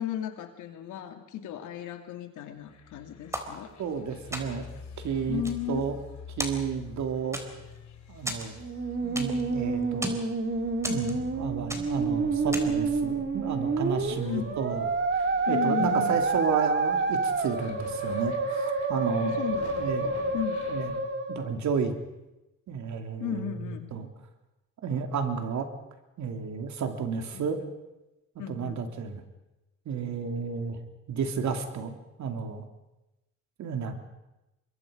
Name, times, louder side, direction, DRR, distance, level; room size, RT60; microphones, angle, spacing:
voice 1, 0.0-3.7 5.3-5.8 14.1-14.6 15.4-16.2 19.2-19.7 20.0-20.6 23.2-23.9 27.3-27.5 28.4-28.8, left 10 dB, 90° left, 6 dB, 2.6 m, -35 dB
sound 1, 2.7-21.0, left 6 dB, 65° left, 3.4 m, -48 dB
sound 2, 3.3-4.0 4.3-4.8 5.2-6.1 6.4-7.0 7.3-7.8 8.3-9.5 9.8-10.3 10.8-11.4 11.7-12.1 12.5-12.9, right 1 dB, 10° right, 3.6 m, -36 dB
voice 2, 3.8-4.7 5.0-5.4 5.7-6.0 6.4-7.4 8.1-8.5 9.0-10.1 10.9-14.9 15.2-19.4 19.8-20.1 20.7-21.9 22.7-24.1 24.8-25.7 26.2-27.6 28.5-29.2 29.8-30.8 31.1-31.9 32.2-32.6 33.6-34.0, right 6 dB, 70° right, 6 dB, 3.0 m, -32 dB
Musical instrument, 8.6-21.6, right 4 dB, 40° right, 2.7 m, -28 dB
25.5 x 22.0 x 5.2 m, 0.98 s
cardioid pair, 90°, 30 cm